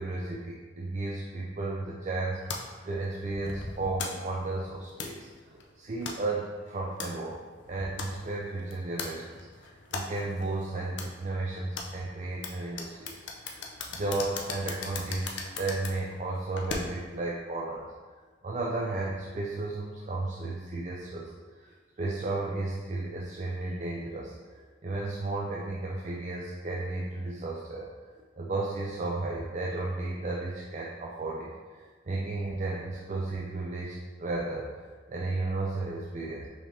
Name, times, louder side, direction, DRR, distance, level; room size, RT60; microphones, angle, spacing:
voice 1, 0.0-7.4 7.7-13.6 13.9-17.9 18.4-24.3 24.8-36.5, right 2 dB, 40° right, -3 dB, 0.4 m, -34 dB
sound 1, 2.5-17.2, left 4 dB, 75° left, 0.5 m, -41 dB
5.4 x 3.2 x 2.9 m, 1.4 s
head